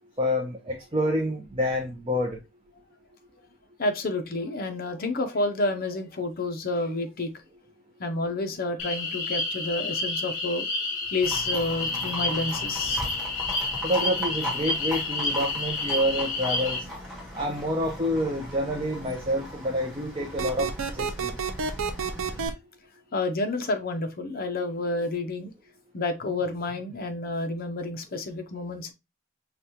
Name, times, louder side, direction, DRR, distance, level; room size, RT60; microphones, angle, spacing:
voice 1, 0.2-2.4 13.8-16.8 17.3-21.3, equal, 25° right, 0.5 m, -28 dB
voice 2, 3.8-7.3 8.0-10.7 11.1-13.0 23.1-25.5 25.9-28.9, left 2 dB, 45° left, 0.6 m, -29 dB
sound 1, 8.8-16.8, left 3 dB, 70° left, 0.9 m, -29 dB
Livestock farm animals working animals, 11.2-22.5, equal, ahead, 1.5 m, -38 dB
sound 2, 20.4-22.5, right 5 dB, 80° right, 0.5 m, -29 dB
4.9 x 2.3 x 2.8 m
head